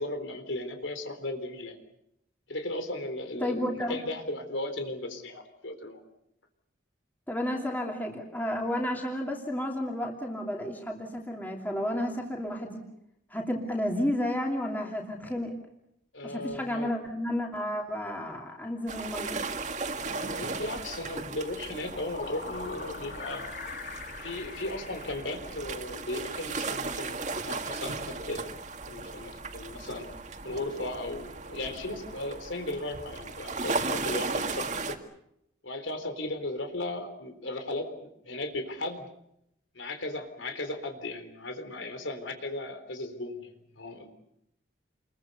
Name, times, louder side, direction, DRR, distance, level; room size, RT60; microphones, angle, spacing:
voice 1, 0.0-1.8 2.5-6.0 16.1-16.9 20.1-23.6 24.2-28.6 28.9-30.1 30.4-35.0 35.6-37.9 38.2-39.1 39.7-43.5 43.8-44.1, left 2 dB, 90° left, 7 dB, 3.9 m, -36 dB
voice 2, 3.4-4.0 7.3-12.8 13.3-15.6 16.2-19.4, left 1 dB, 10° left, 0 dB, 2.8 m, -32 dB
sound 1, 18.9-34.9, right 3 dB, 40° right, 2.0 m, -36 dB
sound 2, 21.8-26.0, left 4 dB, 50° left, 2.2 m, -42 dB
29.0 x 22.5 x 6.8 m, 0.79 s
head